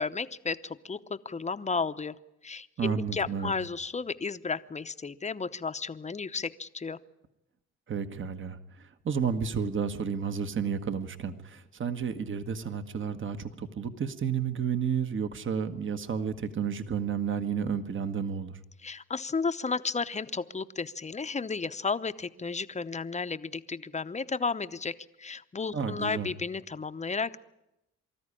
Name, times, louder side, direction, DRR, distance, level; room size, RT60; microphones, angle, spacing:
voice 1, 0.0-2.2 2.4-7.0 18.8-27.4, left 4 dB, 25° left, 11 dB, 0.8 m, -33 dB
voice 2, 2.8-3.5 7.9-18.6 25.7-26.3, right 7 dB, 40° right, 9 dB, 1.4 m, -31 dB
24.5 x 13.5 x 10.0 m, 0.90 s
cardioid pair, 90°, 30 cm